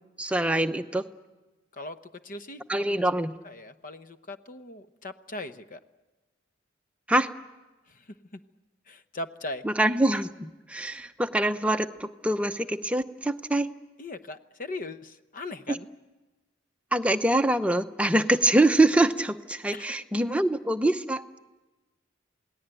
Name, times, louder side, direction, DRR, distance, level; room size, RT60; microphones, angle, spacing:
voice 1, 0.2-1.0 2.7-3.4 7.1-7.3 9.6-13.7 15.7-15.8 16.9-21.2, right 1 dB, 5° right, 7 dB, 0.8 m, -24 dB
voice 2, 1.7-3.0 3.4-5.8 7.9-8.4 8.9-9.6 14.0-15.9 19.7-19.9, left 2 dB, 45° left, 10 dB, 0.9 m, -39 dB
28.0 x 19.0 x 9.0 m, 1.2 s
head